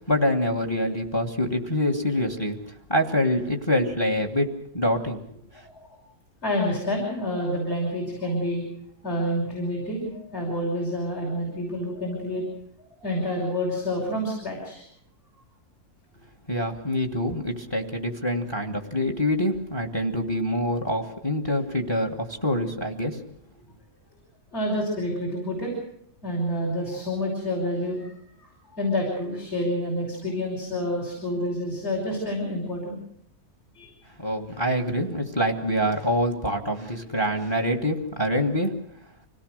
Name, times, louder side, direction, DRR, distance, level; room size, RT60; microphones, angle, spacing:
voice 1, 0.0-2.6 2.9-5.2 5.5-5.7 16.5-23.2 34.2-38.7, equal, 15° left, 5 dB, 1.7 m, -25 dB
voice 2, 6.4-8.6 9.0-12.4 13.0-14.8 24.5-25.7 26.2-33.0 33.8-33.9, left 1 dB, 45° left, -3 dB, 6.0 m, -28 dB
25.5 x 17.5 x 6.6 m, 0.70 s
omnidirectional pair, 1.6 m